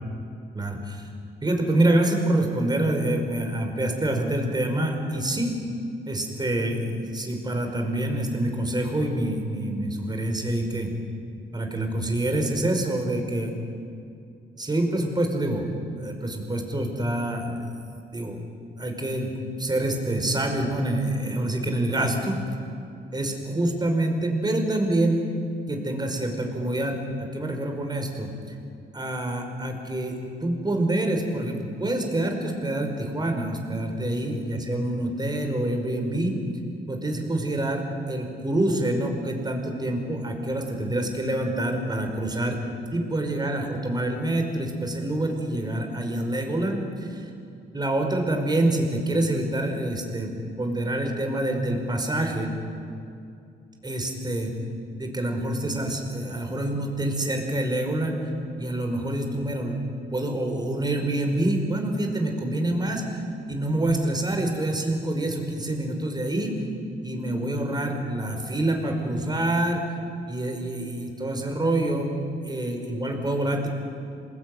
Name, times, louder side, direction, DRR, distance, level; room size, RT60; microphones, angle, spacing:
voice 1, 0.5-1.1 1.4-5.5 6.1-10.9 11.5-13.6 14.6-17.7 18.1-18.4 18.8-19.3 19.6-22.4 23.1-25.2 25.7-28.6 28.9-36.4 36.9-42.6 42.9-47.3 47.7-52.5 53.8-54.5 55.0-58.2 58.6-59.8 60.1-63.2 63.5-66.5 67.0-69.9 70.3-72.1 72.4-73.7, right 1 dB, 20° right, 3 dB, 5.3 m, -26 dB
27.5 x 20.5 x 9.3 m, 2.5 s
cardioid pair, 90°, 20 cm